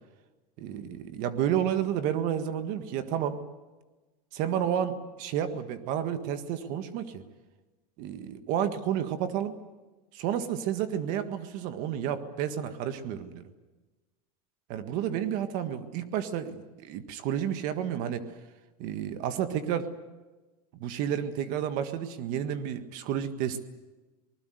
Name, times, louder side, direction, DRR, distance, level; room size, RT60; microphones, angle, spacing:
voice 1, 0.6-3.4 4.3-7.2 8.0-9.5 10.1-13.5 14.7-18.3 18.8-19.9 20.7-23.6, right 9 dB, 45° right, 10 dB, 1.7 m, -31 dB
26.0 x 20.0 x 8.0 m, 1.2 s
supercardioid pair, 165°, 19 cm